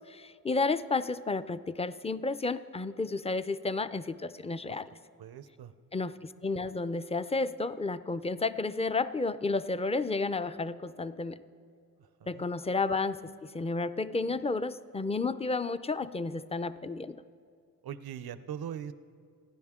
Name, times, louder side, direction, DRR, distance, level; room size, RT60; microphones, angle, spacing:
voice 1, 0.0-4.9 5.9-11.4 12.3-17.2, left 3 dB, 15° left, 13 dB, 0.5 m, -32 dB
voice 2, 5.2-5.7 12.0-12.4 17.8-18.9, right 9 dB, 85° right, 13 dB, 0.7 m, -41 dB
27.5 x 10.5 x 3.7 m, 2.4 s
cardioid pair, 60°, 36 cm